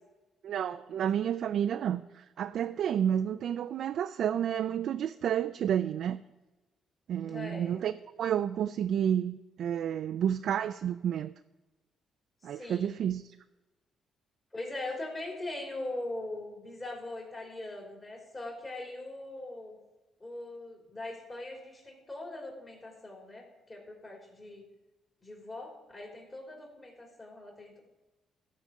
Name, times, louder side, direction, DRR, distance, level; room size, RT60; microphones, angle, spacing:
voice 1, 0.4-6.2 7.1-11.3 12.4-13.4, right 9 dB, 70° right, 0.3 m, -30 dB
voice 2, 7.2-7.8 12.5-13.0 14.5-19.8 20.2-24.6 25.2-27.8, left 2 dB, 30° left, 3.7 m, -41 dB
14.0 x 4.9 x 6.5 m
cardioid pair, 90°, 0 cm